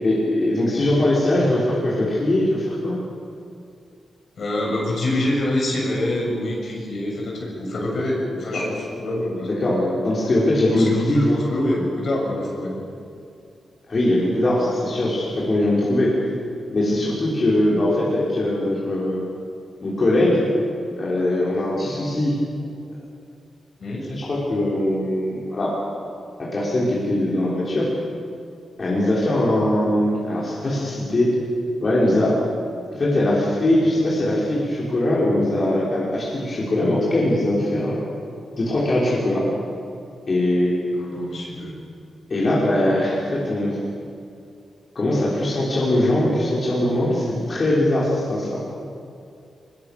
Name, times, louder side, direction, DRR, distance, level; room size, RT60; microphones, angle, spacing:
voice 1, 0.0-3.0 8.5-8.6 9.6-9.8 10.0-11.4 13.9-16.2 16.7-19.2 19.8-20.5 21.0-22.4 24.1-25.8 26.4-27.9 28.8-31.4 31.8-32.4 32.9-38.0 38.6-39.5 40.3-40.8 42.3-43.8 44.9-48.6, left 1 dB, 45° left, -6 dB, 5.8 m, -21 dB
voice 2, 4.4-10.0 10.7-12.8 23.8-24.1 40.9-41.8, left 1 dB, 60° left, -2 dB, 7.2 m, -26 dB
22.5 x 22.5 x 6.9 m, 2.5 s
cardioid pair, 80°, 0 cm